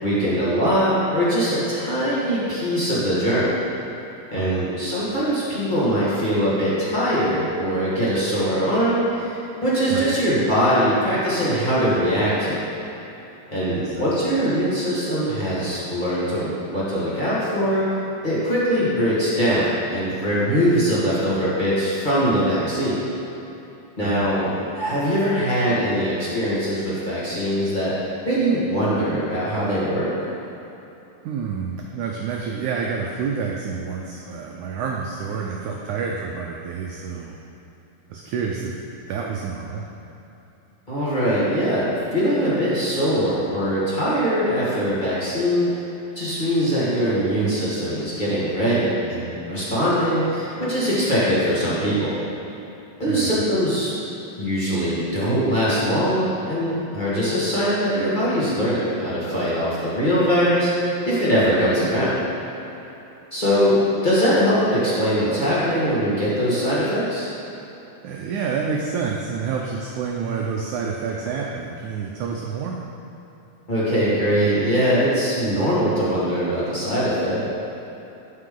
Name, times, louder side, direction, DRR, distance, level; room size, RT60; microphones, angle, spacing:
voice 1, 0.0-3.5 4.3-12.7 13.5-17.9 18.2-23.0 24.0-27.9 28.2-30.1 40.9-45.7 46.1-52.1 53.0-53.9 54.4-60.7 61.0-62.1 63.3-63.8 64.0-67.3 73.7-77.4, equal, 30° left, -10 dB, 0.8 m, -22 dB
voice 2, 13.7-14.1 24.0-24.3 31.2-37.3 38.1-38.7 39.1-39.8 53.1-53.4 68.0-72.8, right 6 dB, 85° right, -1 dB, 1.7 m, -28 dB
13.5 x 5.7 x 3.8 m, 3.0 s
omnidirectional pair, 4.3 m